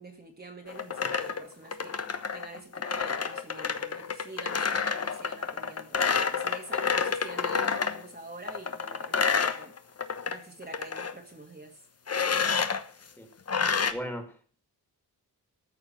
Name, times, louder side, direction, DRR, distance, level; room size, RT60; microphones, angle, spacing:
voice 1, 0.0-2.0 2.3-6.0 6.3-9.7 10.3-11.8, right 2 dB, 25° right, 1.9 m, -46 dB
sound 1, 0.7-8.0 8.5-10.4 10.6-11.1 12.1-12.8 13.5-13.9, left 6 dB, 40° left, 1.1 m, -29 dB
voice 2, 13.9-14.6, equal, 5° left, 2.5 m, -37 dB
14.0 x 6.8 x 7.6 m
wide cardioid pair, 120°, 40 cm